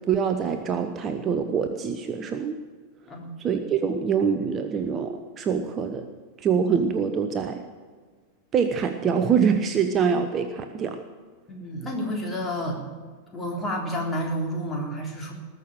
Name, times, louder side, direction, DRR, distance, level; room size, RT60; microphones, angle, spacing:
voice 1, 0.1-2.6 3.4-6.1 6.4-7.6 8.5-11.0, right 6 dB, 25° right, 7 dB, 0.9 m, -25 dB
voice 2, 11.5-12.8 13.3-15.3, equal, 15° left, 0 dB, 3.6 m, -30 dB
20.0 x 6.7 x 9.0 m, 1.5 s
figure-of-eight pair, 90°, 0 cm